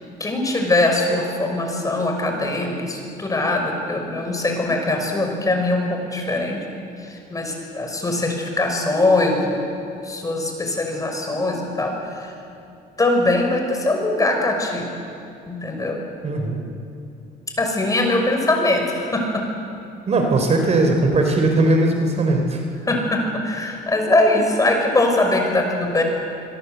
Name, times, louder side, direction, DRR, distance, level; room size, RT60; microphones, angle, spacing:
voice 1, 0.2-6.6 7.1-9.6 9.9-11.9 12.2-12.3 13.0-14.9 15.5-16.0 17.6-19.4 22.8-26.0, left 2 dB, 20° left, 2 dB, 6.0 m, -21 dB
voice 2, 16.2-16.6 20.1-22.6, right 2 dB, 40° right, 4 dB, 3.9 m, -19 dB
26.0 x 23.5 x 8.2 m, 2.6 s
cardioid pair, 110°, 17 cm